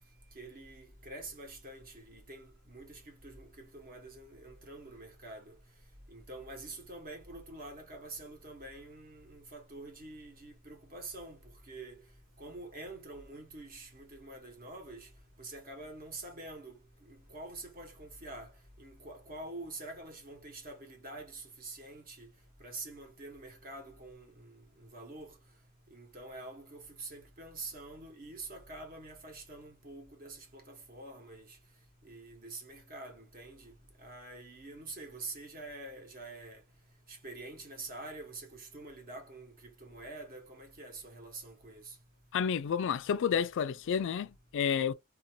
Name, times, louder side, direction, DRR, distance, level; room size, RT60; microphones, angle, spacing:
voice 1, 0.3-5.5 6.1-12.0 12.4-15.1 15.4-18.5 18.8-22.3 22.6-25.3 25.9-31.6 32.0-36.6 37.1-41.9, right 2 dB, 40° right, 1.0 m, -46 dB
voice 2, 42.3-44.9, left 7 dB, 60° left, 0.3 m, -30 dB
2.6 x 2.3 x 2.7 m
head